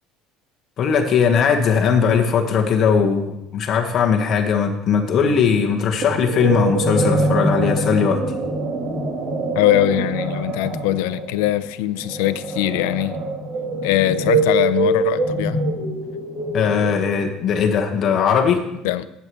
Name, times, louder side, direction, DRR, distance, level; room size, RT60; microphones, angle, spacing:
voice 1, 0.8-8.2 16.5-18.6, left 6 dB, 45° left, 3 dB, 1.4 m, -19 dB
sound 1, 6.0-17.3, right 2 dB, 40° right, 3.0 m, -24 dB
voice 2, 9.5-13.2 13.8-15.6 18.8-19.1, left 15 dB, 90° left, 14 dB, 0.6 m, -21 dB
20.0 x 8.5 x 3.2 m, 0.84 s
cardioid pair, 125°, 0 cm